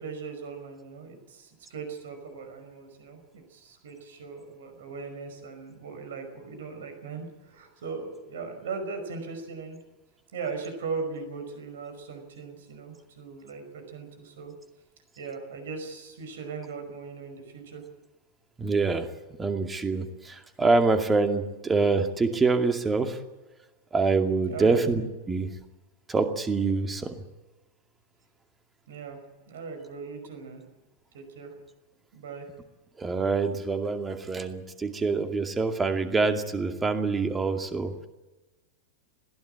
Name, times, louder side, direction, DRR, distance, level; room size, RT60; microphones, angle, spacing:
voice 1, 0.0-9.8 10.3-14.5 15.2-17.8 24.5-24.8 28.9-29.2 29.5-30.6 31.1-31.6 32.1-32.5, right 4 dB, 60° right, 6 dB, 5.3 m, -39 dB
voice 2, 18.6-19.1 19.4-23.2 23.9-25.0 25.3-25.5 26.1-27.1 33.0-37.9, right 4 dB, 15° right, 6 dB, 2.3 m, -25 dB
21.0 x 16.0 x 8.8 m, 1.1 s
figure-of-eight pair, 90°, 0 cm